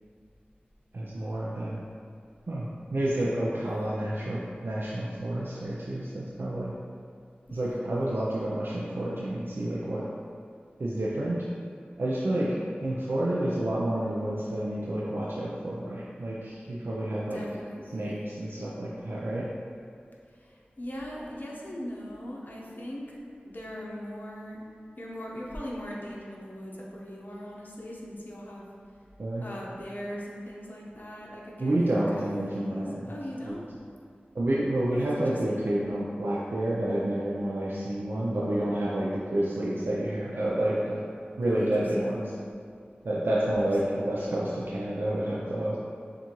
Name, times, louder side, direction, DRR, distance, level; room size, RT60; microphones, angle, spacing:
voice 1, 0.9-1.8 2.5-6.7 7.5-10.0 10.8-11.4 12.0-12.5 12.8-17.4 17.9-19.4 29.2-29.5 31.6-33.1 33.4-33.5 34.3-41.0 41.4-42.3 43.0-45.8, right 1 dB, 75° right, -6 dB, 0.5 m, -29 dB
voice 2, 3.6-3.9 7.5-7.8 12.3-12.7 17.3-18.3 20.3-23.2 23.4-24.6 25.0-28.7 29.4-33.6 34.9-35.7 41.5-42.3 43.9-44.1, equal, 55° left, -4 dB, 0.9 m, -40 dB
6.9 x 2.6 x 3.0 m, 2.4 s
wide cardioid pair, 40°, 4 cm